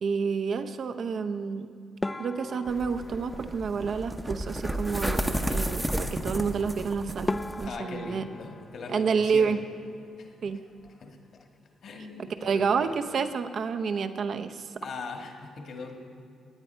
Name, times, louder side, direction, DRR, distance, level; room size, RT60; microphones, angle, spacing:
voice 1, 0.0-1.7 2.2-8.2 8.9-9.6 10.4-10.6 12.4-14.7, right 5 dB, 55° right, 9 dB, 0.7 m, -29 dB
sound 1, 2.0-4.5 6.7-6.8 7.3-10.0 10.3-11.1 11.4-11.6 11.9-12.0 12.6-12.9, left 2 dB, 20° left, 0.3 m, -38 dB
sound 2, 2.7-7.7, right 1 dB, 10° right, 0.7 m, -32 dB
voice 2, 7.6-9.5 10.2-10.5 11.0-11.2 11.8-13.0 14.8-16.0, left 4 dB, 60° left, 3 dB, 1.7 m, -40 dB
18.0 x 9.1 x 4.4 m, 2.4 s
cardioid pair, 90°, 0 cm